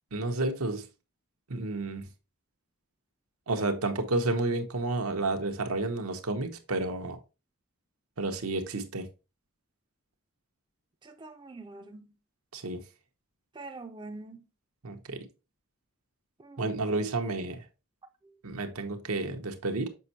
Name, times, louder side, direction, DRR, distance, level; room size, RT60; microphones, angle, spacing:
voice 1, 0.1-0.9 1.5-2.1 3.5-7.2 8.2-9.1 12.5-12.8 14.8-15.3 16.6-17.6 18.4-19.9, right 2 dB, 85° right, 1.0 m, -31 dB
voice 2, 11.0-12.1 13.5-14.4 16.4-16.7 18.2-18.3, right 2 dB, 20° right, 0.4 m, -45 dB
6.8 x 5.3 x 2.8 m
head